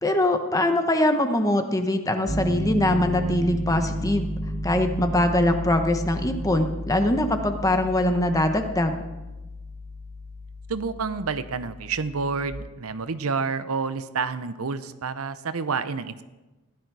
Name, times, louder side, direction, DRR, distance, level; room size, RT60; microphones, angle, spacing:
voice 1, 0.0-4.3 4.6-9.0, left 1 dB, 15° left, 6 dB, 0.9 m, -22 dB
Piano, 2.3-12.5, equal, 30° right, 2.3 m, -33 dB
voice 2, 10.7-16.2, right 5 dB, 75° right, 12 dB, 0.7 m, -29 dB
16.0 x 12.0 x 4.7 m, 1.1 s
head